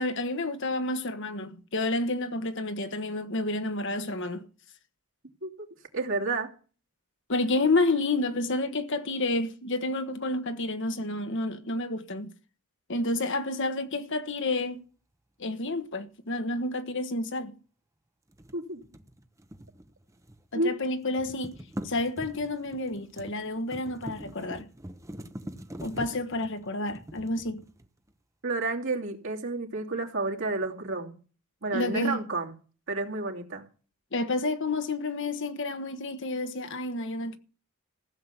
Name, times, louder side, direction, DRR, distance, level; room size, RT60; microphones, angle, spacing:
voice 1, 0.0-4.5 7.3-12.3 12.9-14.8 15.4-17.5 20.5-21.6 21.8-24.6 25.8-27.6 31.7-32.2 34.1-37.4, left 2 dB, 55° left, 1.4 m, -30 dB
voice 2, 5.9-6.5 18.5-18.8 20.5-20.7 28.4-31.1 31.6-32.5 32.9-33.6, right 3 dB, 60° right, 2.9 m, -30 dB
sound 1, 18.3-20.6 20.8-28.1, right 1 dB, 15° right, 0.9 m, -43 dB
15.5 x 7.6 x 8.2 m
head